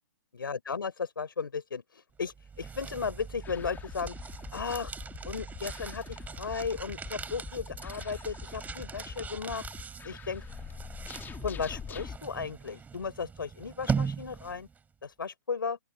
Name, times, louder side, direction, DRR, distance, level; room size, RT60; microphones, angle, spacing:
voice 1, 0.3-4.1 4.5-4.9 5.2-9.7 10.0-10.4 11.4-14.7 15.0-15.8, left 5 dB, 80° left, 6.4 m, -35 dB
sound 1, 2.2-14.8, right 6 dB, 15° right, 4.4 m, -40 dB
sound 2, 3.4-12.2, left 7 dB, 15° left, 2.5 m, -44 dB
open air
hypercardioid pair, 115°, 11 cm